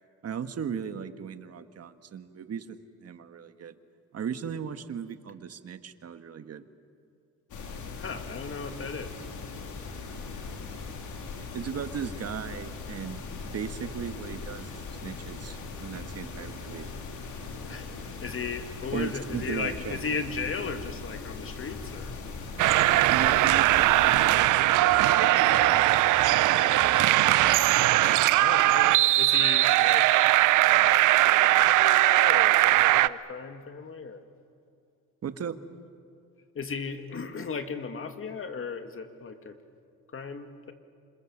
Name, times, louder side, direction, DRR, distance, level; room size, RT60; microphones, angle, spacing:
voice 1, 0.2-3.7 4.1-6.7 11.5-13.2 13.5-16.9 18.9-20.0 23.1-27.3 35.2-35.5, right 7 dB, 55° right, 10 dB, 1.5 m, -37 dB
sound 1, 7.5-24.3, left 4 dB, 75° left, 3.7 m, -40 dB
voice 2, 8.0-9.2 17.7-22.1 28.1-30.3 30.6-34.2 36.5-39.6 40.1-40.7, left 5 dB, 45° left, 7 dB, 2.3 m, -36 dB
sound 2, 22.6-33.1, right 16 dB, 85° right, 0.6 m, -20 dB
sound 3, 22.7-27.8, right 2 dB, 15° right, 4.2 m, -45 dB
27.0 x 27.0 x 7.3 m, 2.4 s
cardioid pair, 90°, 30 cm